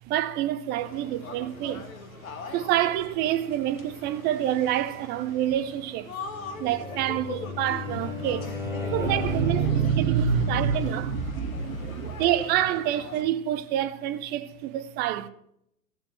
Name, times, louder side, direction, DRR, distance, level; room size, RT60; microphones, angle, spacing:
voice 1, 0.1-1.9 2.5-6.1 6.6-8.5 8.9-9.6 10.0-11.1 12.0-15.3, right 12 dB, 20° right, 0.7 m, -27 dB
sound 1, 0.8-13.2, left 4 dB, 60° left, 2.0 m, -42 dB
Bowed string instrument, 6.3-9.9, left 5 dB, 5° right, 1.3 m, -35 dB
voice 2, 7.9-12.2, right 6 dB, 60° right, 1.7 m, -28 dB
14.5 x 7.1 x 7.4 m
figure-of-eight pair, 100°, 46 cm